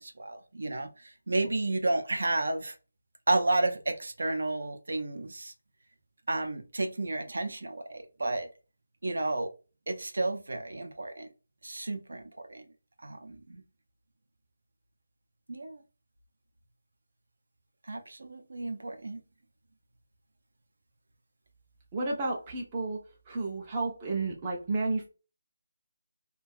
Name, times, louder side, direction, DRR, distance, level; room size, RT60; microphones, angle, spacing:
voice 1, 0.0-2.7 3.3-5.5 6.3-8.5 9.0-9.5 9.9-11.3 11.6-12.6 13.0-13.6 15.5-15.8 17.9-19.2, right 2 dB, 65° right, 0.5 m, -32 dB
voice 2, 21.9-23.0 23.3-25.1, right 3 dB, 15° right, 0.4 m, -31 dB
2.3 x 2.2 x 2.5 m
figure-of-eight pair, 175°, 0 cm